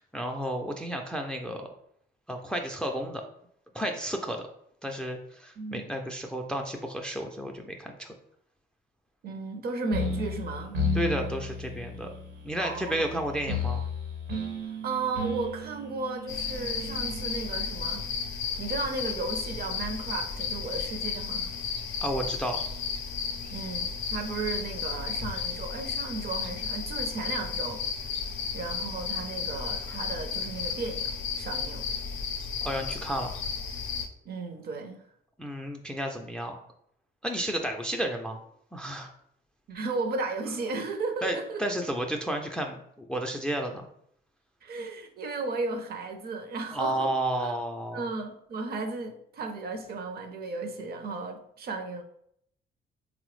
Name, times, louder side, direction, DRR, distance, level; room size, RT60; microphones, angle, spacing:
voice 1, 0.1-1.7 2.3-3.2 3.7-4.5 4.8-8.1 10.9-12.1 12.4-13.8 22.0-22.6 32.6-33.3 35.4-36.6 37.2-38.4 38.7-39.1 41.2-42.8 43.1-43.8 46.7-48.1, right 1 dB, 5° left, 4 dB, 0.3 m, -32 dB
voice 2, 5.6-5.9 9.2-10.8 12.6-13.1 14.8-18.1 18.6-21.5 23.5-27.8 28.5-31.9 34.2-35.0 39.7-41.7 44.6-47.1 47.4-47.5 47.9-52.0, right 3 dB, 50° right, 5 dB, 0.5 m, -34 dB
sound 1, 9.9-17.4, left 2 dB, 85° right, 0.9 m, -33 dB
sound 2, 16.3-34.1, left 6 dB, 80° left, 0.4 m, -33 dB
3.3 x 2.0 x 3.0 m, 0.70 s
cardioid pair, 90°, 20 cm